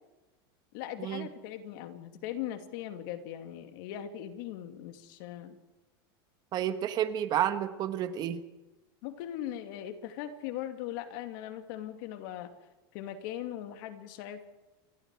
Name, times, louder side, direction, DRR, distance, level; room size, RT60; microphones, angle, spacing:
voice 1, 0.7-5.6 9.0-12.5 12.9-14.4, left 11 dB, 60° left, 7 dB, 2.5 m, -39 dB
voice 2, 6.5-8.4, right 10 dB, 35° right, 10 dB, 1.4 m, -30 dB
28.0 x 22.5 x 4.8 m, 1.1 s
supercardioid pair, 155°, 13 cm